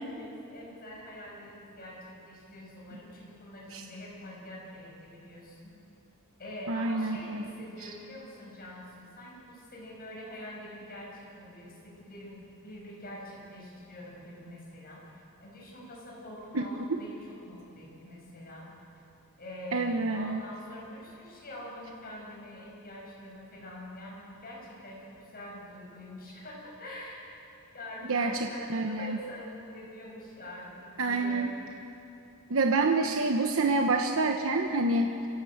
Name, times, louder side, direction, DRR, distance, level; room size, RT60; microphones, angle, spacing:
voice 1, 0.0-5.7 6.4-15.0 15.4-18.7 19.4-27.2 27.7-28.6 28.9-31.7, left 1 dB, 45° left, -3 dB, 7.7 m, -45 dB
voice 2, 6.7-7.5 7.8-7.9 16.5-16.6 19.7-20.4 28.1-28.3 28.7-29.2 31.0-31.5 32.5-35.2, right 3 dB, 65° right, 3 dB, 1.2 m, -27 dB
25.5 x 17.0 x 8.1 m, 2.9 s
head